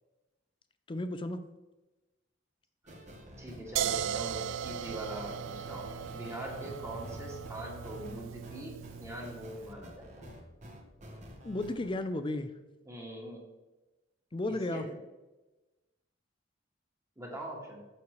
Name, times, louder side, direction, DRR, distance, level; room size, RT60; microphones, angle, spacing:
voice 1, 0.9-1.4 11.4-12.5 14.3-14.9, left 2 dB, 25° left, 10 dB, 0.5 m, -33 dB
sound 1, 2.8-11.9, equal, 40° right, 1.1 m, -49 dB
voice 2, 3.4-10.3 12.8-13.4 14.5-15.0 17.2-17.8, right 1 dB, 15° right, -2 dB, 1.6 m, -43 dB
sound 2, 3.8-9.6, right 8 dB, 80° right, 0.3 m, -37 dB
sound 3, 6.9-8.7, left 1 dB, 55° right, 1.8 m, -54 dB
7.1 x 6.6 x 3.1 m, 1.1 s
head